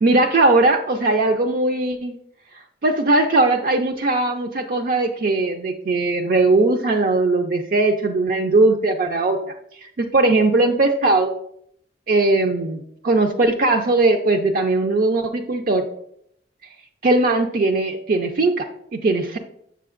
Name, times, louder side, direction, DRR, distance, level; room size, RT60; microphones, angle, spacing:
voice 1, 0.0-2.2 2.8-9.4 9.7-9.9 10.1-11.3 12.1-15.9 17.0-18.7 18.9-19.4, right 2 dB, 55° right, 3 dB, 0.5 m, -19 dB
7.0 x 6.7 x 2.5 m, 0.71 s
head